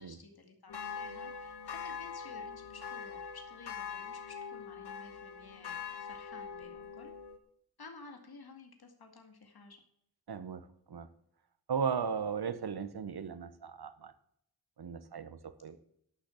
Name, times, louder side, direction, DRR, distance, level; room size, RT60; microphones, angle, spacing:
voice 1, 0.0-7.1 7.8-9.8, left 4 dB, 70° left, 5 dB, 2.1 m, -53 dB
sound 1, 0.7-7.4, left 6 dB, 85° left, 1.3 m, -43 dB
voice 2, 10.3-11.1 11.7-14.1 14.8-15.8, right 6 dB, 75° right, 13 dB, 1.1 m, -36 dB
11.0 x 6.4 x 8.5 m, 0.73 s
wide cardioid pair, 80°, 39 cm